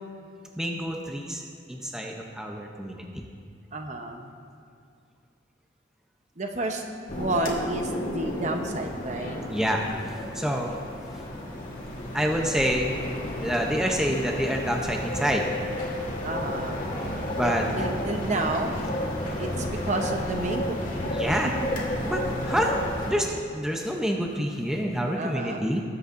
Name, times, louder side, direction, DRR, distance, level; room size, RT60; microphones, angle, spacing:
voice 1, 0.6-1.4 1.7-3.2 9.5-9.8 10.3-10.7 12.1-13.0 13.4-15.5 17.3-17.7 19.5-19.7 21.1-21.5 22.0-22.7 23.1-25.8, equal, 5° right, 0 dB, 0.6 m, -27 dB
voice 2, 3.7-4.3 6.4-6.8 7.1-9.4 16.2-16.9 17.4-18.8 19.4-21.1 25.1-25.7, right 2 dB, 40° right, 4 dB, 0.8 m, -30 dB
sound 1, 7.1-23.1, left 1 dB, 50° left, 1.7 m, -32 dB
19.5 x 8.1 x 2.6 m, 2.4 s
head